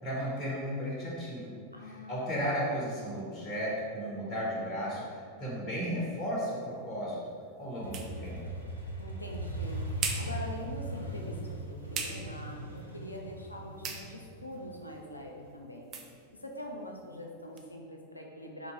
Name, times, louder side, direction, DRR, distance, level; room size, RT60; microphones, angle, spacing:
voice 1, 0.0-7.2 7.6-8.4, equal, 25° left, -5 dB, 0.9 m, -35 dB
voice 2, 1.7-2.5 9.0-9.8 10.2-15.9 16.4-18.7, left 1 dB, 85° left, 1 dB, 0.4 m, -44 dB
sound 1, 6.2-17.7, right 5 dB, 30° right, 0.4 m, -44 dB
Motorcycle, 7.8-15.5, right 1 dB, 90° right, 0.5 m, -39 dB
3.0 x 2.7 x 3.8 m, 2.1 s
figure-of-eight pair, 90°, 0 cm